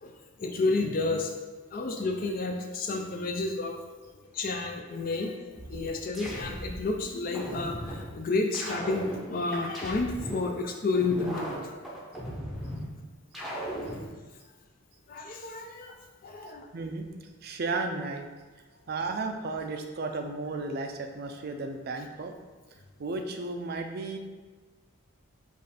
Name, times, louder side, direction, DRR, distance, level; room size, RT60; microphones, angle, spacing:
voice 1, 0.0-1.3 1.7-3.9 4.3-5.4 5.7-11.7 15.1-16.7, left 3 dB, 40° left, 3 dB, 0.4 m, -31 dB
sound 1, 5.5-6.9 7.3-8.1 8.5-10.5 10.9-12.9 13.3-14.1, equal, ahead, 0.7 m, -37 dB
voice 2, 16.7-17.1 17.4-18.3 18.9-22.3 23.0-24.2, right 3 dB, 45° right, 5 dB, 0.4 m, -34 dB
5.3 x 2.5 x 4.0 m, 1.3 s
head